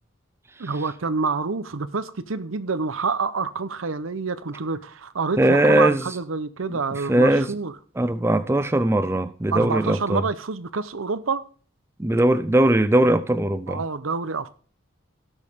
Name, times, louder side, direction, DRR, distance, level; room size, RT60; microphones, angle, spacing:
voice 1, 0.6-7.7 9.5-11.4 13.7-14.6, right 4 dB, 85° right, 0.8 m, -27 dB
voice 2, 5.4-6.0 6.7-7.5 8.0-10.2 12.0-13.8, right 1 dB, 10° right, 0.4 m, -20 dB
16.5 x 6.4 x 3.6 m
head